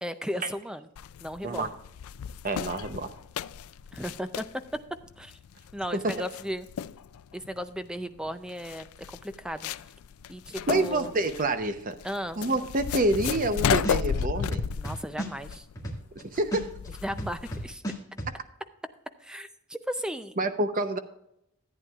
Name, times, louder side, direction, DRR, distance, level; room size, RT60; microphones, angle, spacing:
voice 1, 0.0-0.9 1.2-1.7 3.9-4.4 5.2-5.4 5.7-6.7 7.3-9.7 10.3-11.1 12.0-12.4 14.8-15.7 17.0-17.8 19.2-20.4, equal, 5° right, 10 dB, 0.4 m, -35 dB
sound 1, 1.0-17.7, left 7 dB, 80° left, 0.4 m, -34 dB
voice 2, 2.4-3.1 5.9-6.1 10.7-12.0 12.4-14.6 16.3-16.7 20.4-21.0, right 2 dB, 40° right, 9 dB, 0.7 m, -27 dB
sound 2, 13.2-13.5 13.8-16.2 16.5-18.3, right 1 dB, 15° left, 1.8 m, -34 dB
14.0 x 9.1 x 2.4 m, 0.79 s
head